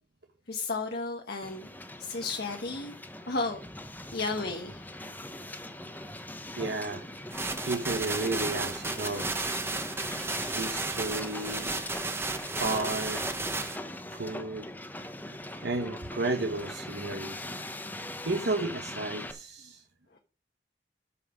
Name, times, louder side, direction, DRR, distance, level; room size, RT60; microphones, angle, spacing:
voice 1, 0.5-1.7 2.0-2.9 3.3-3.6 4.1-4.9 20.1-20.2, left 3 dB, 60° left, 1.2 m, -33 dB
Hiss, 1.4-19.3, left 1 dB, 10° left, 1.1 m, -41 dB
voice 2, 6.6-7.4 7.6-9.3 10.6-11.7 12.6-13.2 14.1-14.7 15.6-17.4 18.2-19.8, right 2 dB, 65° right, 1.1 m, -33 dB
sound 1, 7.3-13.8, right 3 dB, 15° right, 1.3 m, -33 dB
13.0 x 5.8 x 5.0 m
head